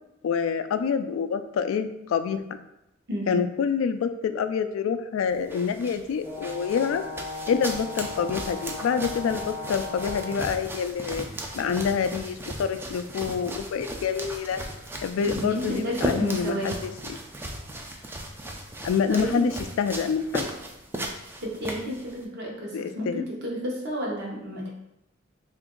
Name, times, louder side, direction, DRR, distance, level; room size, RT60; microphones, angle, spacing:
voice 1, 0.2-2.6 3.3-7.0 7.5-11.3 11.5-14.6 15.0-16.8 17.1-17.2 18.8-19.5 19.8-20.5 22.7-23.2, left 6 dB, 85° left, 10 dB, 0.3 m, -27 dB
voice 2, 3.1-3.5 15.2-16.8 19.1-19.5 21.4-24.7, equal, 60° right, -3 dB, 0.9 m, -31 dB
sound 1, 5.3-22.2, right 1 dB, 10° right, 0.3 m, -37 dB
Brass instrument, 6.2-10.6, left 3 dB, 30° right, 0.8 m, -37 dB
2.9 x 2.5 x 3.6 m, 0.88 s
head